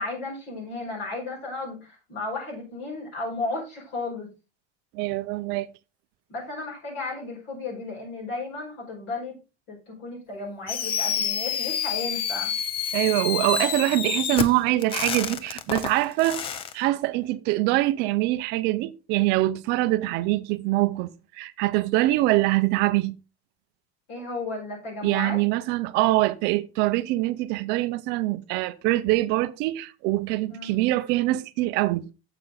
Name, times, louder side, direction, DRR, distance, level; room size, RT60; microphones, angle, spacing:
voice 1, 0.0-4.3 6.3-9.3 9.7-12.5 24.1-25.4 30.5-30.7, left 3 dB, 35° left, 5.5 m, -34 dB
voice 2, 4.9-5.7 12.9-16.5 16.7-23.2 25.0-32.1, right 17 dB, 35° right, 0.5 m, -24 dB
Fireworks, 10.7-16.7, left 8 dB, 20° left, 0.4 m, -28 dB
9.1 x 7.7 x 3.9 m
supercardioid pair, 170°, 31 cm